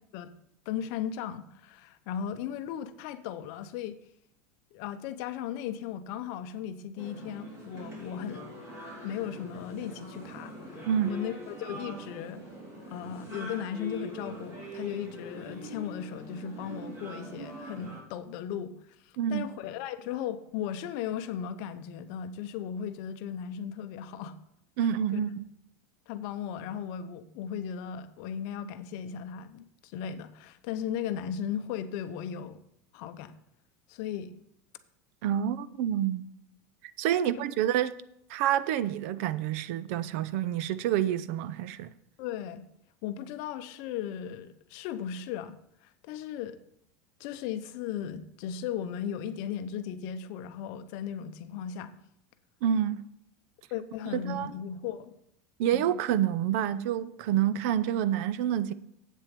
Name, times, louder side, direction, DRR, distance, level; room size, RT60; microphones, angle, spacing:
voice 1, 0.7-4.0 4.7-8.5 9.0-12.4 12.9-24.4 24.8-25.2 26.1-32.6 32.9-33.3 33.9-34.3 37.2-37.4 42.2-42.6 43.0-46.6 47.2-51.9 53.7-55.1 55.7-55.9, left 9 dB, 50° left, 0.7 m, -37 dB
sound 1, 7.0-18.0, equal, 30° right, 3.7 m, -43 dB
voice 2, 19.2-19.5 24.8-25.3 35.2-36.3 37.0-38.0 38.3-41.9 52.6-53.0 54.1-54.5 55.6-58.7, right 10 dB, 55° right, 0.5 m, -28 dB
8.3 x 7.4 x 5.2 m
supercardioid pair, 170°, 8 cm